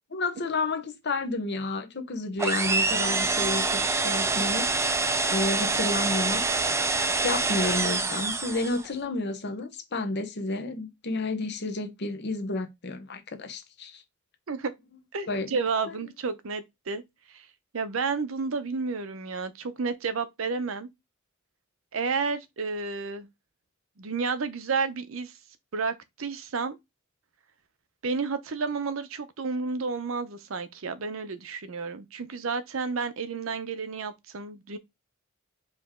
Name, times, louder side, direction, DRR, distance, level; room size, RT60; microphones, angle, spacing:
voice 1, 0.1-4.7 5.3-6.4 7.2-14.0 15.3-15.5, left 2 dB, 55° left, 0.9 m, -31 dB
sound 1, 2.4-8.9, right 3 dB, 15° right, 0.4 m, -26 dB
voice 2, 15.1-17.0 17.3-17.5 17.7-20.9 21.9-23.3 24.0-25.3 25.7-26.8 28.0-34.8, right 4 dB, 70° right, 0.6 m, -31 dB
4.9 x 2.9 x 3.6 m
head